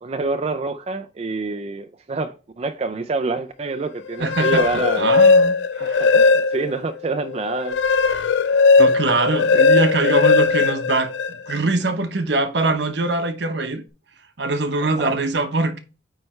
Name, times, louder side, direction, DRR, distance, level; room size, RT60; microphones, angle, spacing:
voice 1, 0.0-5.1 5.8-7.8 14.8-15.1, right 3 dB, 35° right, 0.4 m, -27 dB
sound 1, 4.1-6.8 7.3-11.6, left 4 dB, 75° left, 0.4 m, -17 dB
voice 2, 4.2-6.1 8.1-8.3 8.8-11.1 11.5-13.8 14.4-15.8, right 2 dB, 65° right, 1.0 m, -23 dB
9.1 x 3.2 x 4.4 m
head